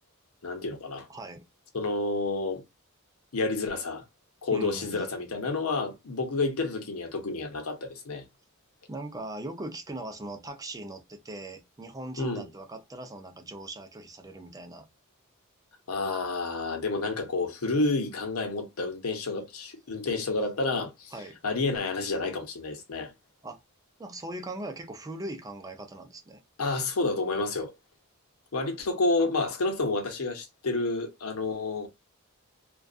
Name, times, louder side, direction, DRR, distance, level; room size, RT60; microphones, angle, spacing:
voice 1, 0.4-1.1 1.7-2.6 3.3-4.0 4.4-8.2 12.2-12.5 15.9-21.1 21.4-23.1 26.6-27.7 28.5-31.9, left 3 dB, 85° left, 0.8 m, -29 dB
voice 2, 1.1-1.4 4.5-5.0 8.9-14.9 21.1-21.4 23.4-23.6 24.0-26.4, right 1 dB, 15° right, 0.4 m, -40 dB
2.5 x 2.3 x 2.3 m
head